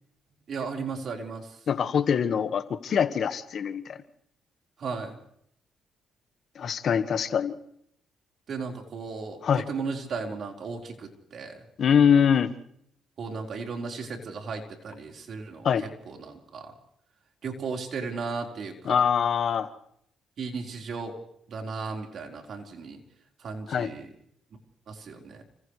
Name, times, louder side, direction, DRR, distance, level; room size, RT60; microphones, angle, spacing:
voice 1, 0.5-1.6 4.8-5.2 8.5-11.6 13.2-15.7 16.0-16.7 17.4-19.0 20.4-21.1 21.5-23.0 23.4-24.1 24.9-25.4, right 4 dB, 60° right, 1 dB, 4.5 m, -35 dB
voice 2, 1.7-4.0 6.5-7.6 9.4-9.6 11.8-12.5 15.6-15.8 18.8-19.7 23.7-23.9, left 7 dB, 60° left, 9 dB, 1.6 m, -23 dB
30.0 x 28.0 x 3.3 m, 0.71 s
cardioid pair, 90°, 0 cm